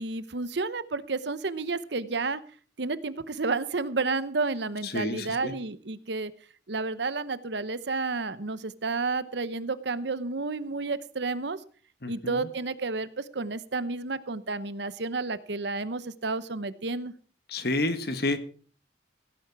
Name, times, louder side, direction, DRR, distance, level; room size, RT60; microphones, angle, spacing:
voice 1, 0.0-2.4 2.8-6.3 6.7-11.6 12.1-17.1, right 3 dB, 65° right, 14 dB, 0.9 m, -31 dB
voice 2, 4.8-5.5 12.0-12.5 17.5-18.4, left 2 dB, 55° left, 9 dB, 1.5 m, -30 dB
17.0 x 9.6 x 4.7 m, 0.41 s
head